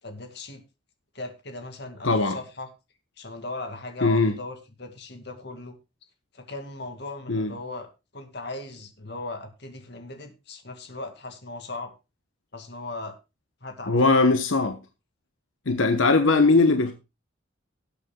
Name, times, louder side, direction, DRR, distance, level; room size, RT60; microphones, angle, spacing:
voice 1, 0.0-0.6 1.1-2.7 3.2-5.7 6.3-7.9 8.1-11.9 12.5-13.1 13.6-14.2, left 2 dB, 55° left, 2.3 m, -38 dB
voice 2, 2.0-2.4 4.0-4.3 7.3-7.5 13.9-14.8 15.7-16.9, left 3 dB, 85° left, 1.2 m, -20 dB
19.0 x 8.4 x 2.4 m
head